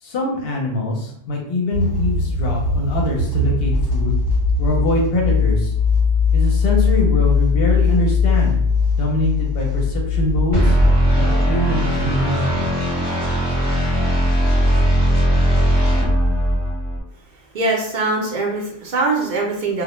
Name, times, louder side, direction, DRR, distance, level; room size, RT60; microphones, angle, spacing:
voice 1, 0.0-4.2 4.6-5.7 6.3-8.6 8.9-10.8 11.2-12.7, left 1 dB, 60° left, 0 dB, 0.7 m, -23 dB
sound 1, 1.7-10.9, left 4 dB, 70° right, 0.9 m, -19 dB
sound 2, 10.5-17.0, equal, 25° left, 0.7 m, -18 dB
voice 2, 17.2-19.8, right 3 dB, 55° right, -2 dB, 0.6 m, -22 dB
2.1 x 2.0 x 2.9 m, 0.71 s
omnidirectional pair, 1.2 m